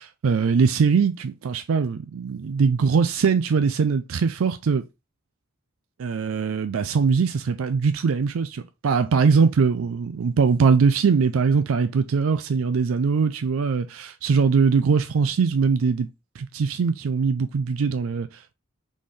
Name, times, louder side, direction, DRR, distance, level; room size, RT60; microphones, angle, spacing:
voice 1, 0.0-4.8 6.0-16.1 16.4-18.5, right 5 dB, 80° right, 0.4 m, -21 dB
4.2 x 3.7 x 3.2 m
head